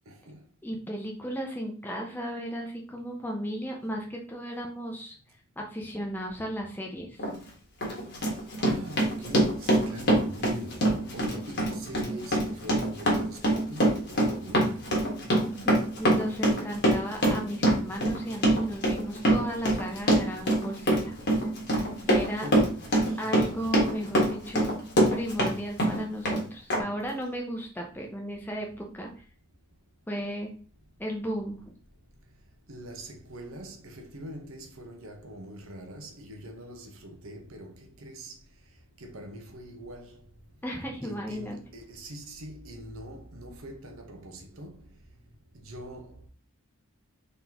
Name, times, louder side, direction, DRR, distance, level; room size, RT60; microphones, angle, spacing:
voice 1, 0.1-0.5 8.3-14.9 21.8-22.0 22.4-23.6 32.7-38.4 38.7-40.3 41.0-45.0 45.5-46.3, equal, 65° right, 0.9 m, -43 dB
voice 2, 0.6-5.2 5.6-7.2 15.4-21.1 22.1-22.5 23.2-24.8 25.1-29.2 30.1-30.5 31.0-31.6 40.6-41.6, equal, 10° left, 0.6 m, -35 dB
Run, 7.2-7.3 7.8-25.5 25.8-26.4 26.7-26.8, right 1 dB, 50° left, 1.4 m, -24 dB
3.9 x 3.7 x 2.9 m
head